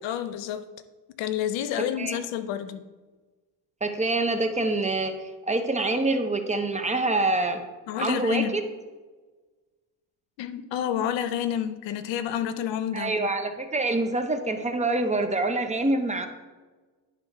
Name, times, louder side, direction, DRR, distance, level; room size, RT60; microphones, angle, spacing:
voice 1, 0.0-0.7 1.2-2.8 7.9-8.5 10.4-13.1, left 10 dB, 85° left, 12 dB, 0.7 m, -29 dB
voice 2, 3.8-5.2 5.5-7.6 8.0-8.4 12.9-16.3, right 2 dB, 15° right, 6 dB, 0.6 m, -25 dB
10.5 x 3.7 x 4.5 m, 1.3 s
cardioid pair, 105°, 43 cm